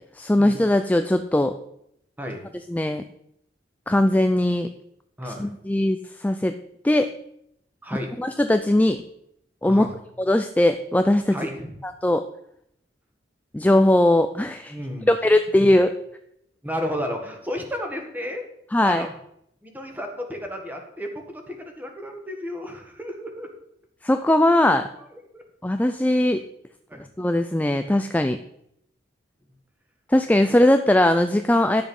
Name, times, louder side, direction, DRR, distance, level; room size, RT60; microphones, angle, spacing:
voice 1, 0.2-1.5 2.7-3.0 3.9-4.7 5.3-6.6 6.8-7.1 8.2-9.0 9.6-9.9 10.3-11.4 11.8-12.2 13.5-14.7 15.1-15.9 18.7-19.1 24.0-24.9 25.6-26.4 27.2-28.4 30.1-31.8, left 1 dB, 10° left, 8 dB, 0.4 m, -20 dB
voice 2, 5.2-5.5 7.8-8.1 9.7-9.9 11.3-11.7 14.7-15.1 16.6-18.4 18.8-19.1 19.6-23.5 25.3-25.4 26.9-27.0, equal, 10° right, 3 dB, 1.6 m, -32 dB
11.5 x 7.1 x 5.4 m, 0.75 s
head